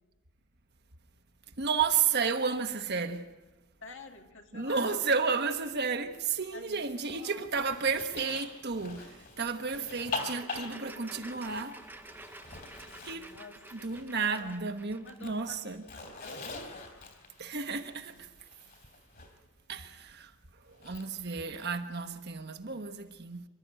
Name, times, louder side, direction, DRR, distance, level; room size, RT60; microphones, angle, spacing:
voice 1, 1.6-3.3 4.5-11.8 13.0-13.3 13.8-15.8 17.4-18.3 19.7-20.3 20.7-23.5, right 5 dB, 50° right, 1.2 m, -32 dB
voice 2, 3.8-5.2 6.5-7.8 9.6-9.9 12.9-13.9 14.2-14.5 14.9-16.6 17.2-17.4 18.0-18.8, left 2 dB, 55° left, 2.1 m, -50 dB
Zipper (clothing), 6.8-14.6 14.9-19.3 20.7-21.6, left 3 dB, 40° left, 3.3 m, -44 dB
sound 1, 9.7-15.4, right 2 dB, 10° right, 0.8 m, -50 dB
27.5 x 12.5 x 9.0 m
head